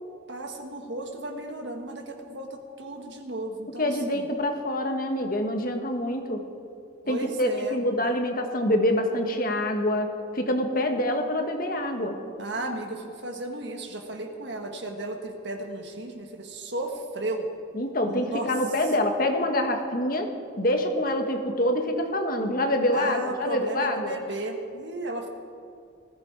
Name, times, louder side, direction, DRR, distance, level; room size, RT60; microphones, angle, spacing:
voice 1, 0.3-4.2 7.0-7.8 12.4-17.5 18.0-18.5 22.9-25.3, right 2 dB, 60° right, 3 dB, 1.7 m, -34 dB
voice 2, 3.8-6.4 7.1-12.2 17.7-20.3 20.6-24.2, left 1 dB, 45° left, 4 dB, 1.5 m, -26 dB
19.5 x 15.0 x 4.8 m, 2.4 s
head